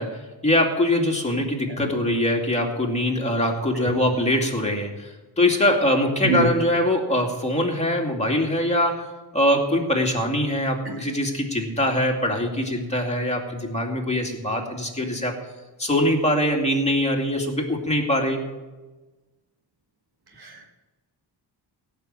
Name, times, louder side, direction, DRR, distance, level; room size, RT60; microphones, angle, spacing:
voice 1, 0.0-15.4 15.8-18.4, left 1 dB, 15° left, 1 dB, 2.3 m, -23 dB
voice 2, 3.8-3.9 6.2-6.5 20.4-20.7, right 3 dB, 55° right, 1 dB, 1.9 m, -24 dB
17.0 x 6.0 x 8.9 m, 1.2 s
wide cardioid pair, 130°, 44 cm